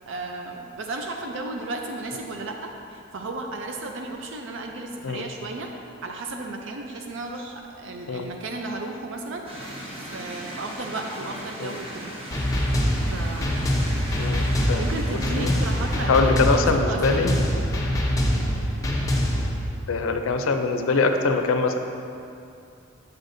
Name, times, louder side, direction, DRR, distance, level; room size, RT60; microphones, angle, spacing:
voice 1, 0.1-5.7 6.0-9.5 9.9-12.1 13.1-13.7 14.8-17.6 18.3-18.5, right 2 dB, 65° right, 2 dB, 0.4 m, -34 dB
sound 1, 9.5-16.0, right 1 dB, 30° right, 0.9 m, -37 dB
sound 2, 12.3-19.5, equal, 15° left, 0.7 m, -24 dB
voice 2, 14.2-14.8 15.4-15.5 16.1-17.4 19.9-21.8, left 4 dB, 80° left, 6 dB, 0.5 m, -23 dB
8.1 x 6.4 x 2.6 m, 2.6 s
head